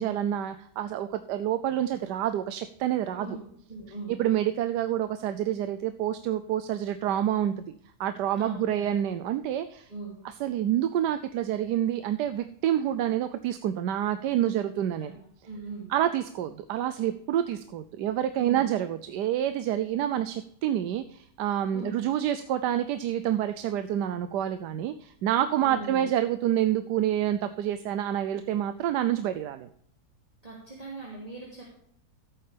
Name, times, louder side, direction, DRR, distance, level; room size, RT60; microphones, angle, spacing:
voice 1, 0.0-3.3 4.1-7.7 8.0-9.9 10.4-15.1 15.9-29.7, right 11 dB, 85° right, 10 dB, 1.2 m, -28 dB
voice 2, 3.7-4.1 8.4-8.9 9.9-10.2 15.0-15.1 15.4-15.9 18.4-18.7 21.7-22.0 25.6-26.1 30.4-31.6, right 3 dB, 20° right, -5 dB, 2.7 m, -40 dB
15.0 x 8.8 x 3.4 m, 0.67 s
omnidirectional pair, 1.8 m